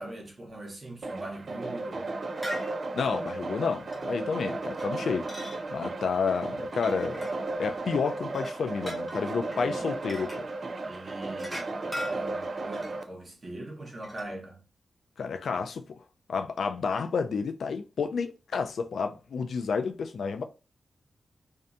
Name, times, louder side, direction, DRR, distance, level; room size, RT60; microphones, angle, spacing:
voice 1, 0.0-2.2 9.5-9.9 10.8-14.6, right 1 dB, 40° right, 1.1 m, -42 dB
sound 1, 1.0-13.0, right 2 dB, 55° right, 0.3 m, -35 dB
sound 2, 2.3-2.7 3.3-3.5 3.9-4.1 4.5-5.6 6.7-7.8 8.2-9.6 10.1-10.4 11.3-13.1 13.8-14.2, equal, ahead, 0.8 m, -40 dB
voice 2, 2.9-5.3 5.7-7.3 7.6-10.5 15.2-15.8 16.3-20.4, left 5 dB, 80° left, 0.3 m, -30 dB
2.6 x 2.2 x 2.5 m
cardioid pair, 75°, 0 cm